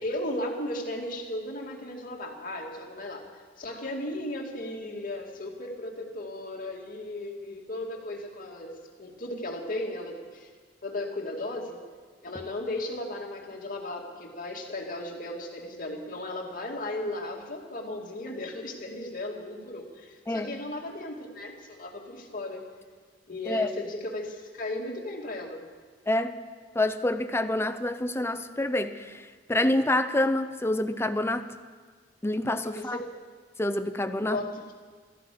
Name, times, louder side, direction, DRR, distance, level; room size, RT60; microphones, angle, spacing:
voice 1, 0.0-3.2 3.6-10.5 10.8-11.8 12.2-22.7 23.3-25.6 32.6-33.0 34.2-34.7, left 1 dB, 50° left, 0 dB, 2.4 m, -36 dB
voice 2, 26.7-29.2 29.5-31.5 32.2-33.0 33.6-34.4, left 1 dB, 15° left, 10 dB, 0.7 m, -27 dB
14.0 x 11.5 x 8.5 m, 1.5 s
head